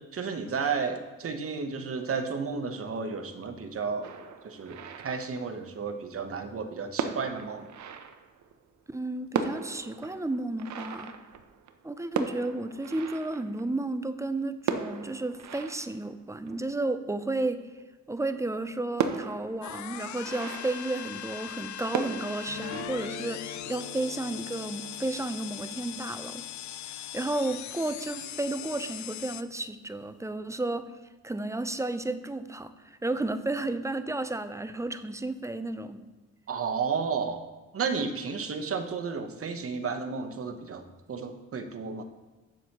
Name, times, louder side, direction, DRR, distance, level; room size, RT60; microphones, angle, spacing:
voice 1, 0.1-4.1 4.4-7.7 36.5-37.4 37.7-40.8 41.1-42.0, right 5 dB, 50° right, 7 dB, 0.9 m, -32 dB
sound 1, 4.0-5.8 6.6-6.7 7.0-8.7 9.0-9.1 9.3-14.1 14.6-17.2 17.8-17.9 18.2-18.3 19.0-21.6 21.9-22.8, right 7 dB, 70° right, 0.7 m, -37 dB
voice 2, 8.9-11.1 11.8-17.7 18.1-26.4 26.9-30.9 31.2-36.0, right 2 dB, 10° right, 11 dB, 0.5 m, -32 dB
sound 2, 19.6-29.4, left 11 dB, 70° left, 0.5 m, -40 dB
sound 3, 22.5-28.6, left 5 dB, 50° left, 1.0 m, -44 dB
8.0 x 7.1 x 3.0 m, 1.2 s
cardioid pair, 65°, 30 cm